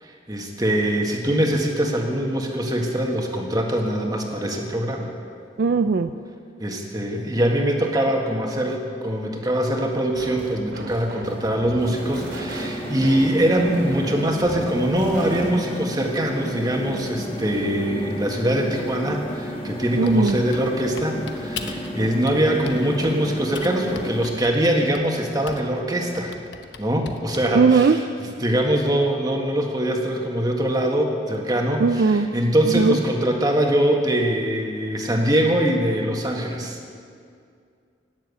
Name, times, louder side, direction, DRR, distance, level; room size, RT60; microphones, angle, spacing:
voice 1, 0.0-5.1 6.6-26.3 26.8-28.0 28.4-36.8, right 1 dB, 20° right, 1 dB, 1.7 m, -23 dB
voice 2, 5.6-6.1 19.9-20.4 27.5-28.0 31.8-32.3 32.7-33.0, right 4 dB, 60° right, 9 dB, 0.4 m, -18 dB
sound 1, 10.1-15.8, right 1 dB, 80° right, 2.7 m, -37 dB
sound 2, 11.8-24.3, equal, 30° left, 1.4 m, -32 dB
Typing, 20.1-21.9 22.3-23.2 23.5-25.8 26.1-27.6, left 6 dB, 75° left, 1.0 m, -39 dB
18.5 x 7.4 x 8.3 m, 2.3 s
head